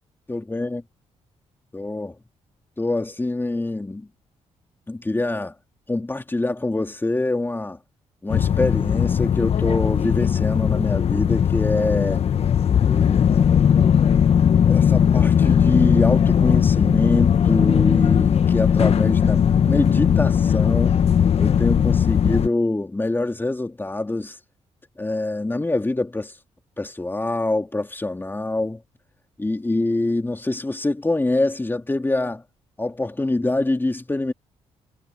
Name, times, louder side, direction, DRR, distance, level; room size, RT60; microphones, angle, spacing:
voice 1, 0.3-0.8 1.7-2.2 2.8-4.1 4.9-5.5 5.9-7.8 8.2-12.2 12.8-13.5 14.6-21.0 21.4-24.4 25.0-26.3 26.8-28.8 29.4-32.4 32.8-34.3, left 2 dB, 15° left, 2.7 m, -25 dB
sound 1, 8.3-22.5, left 8 dB, 55° left, 0.9 m, -18 dB
cardioid pair, 80°, 12 cm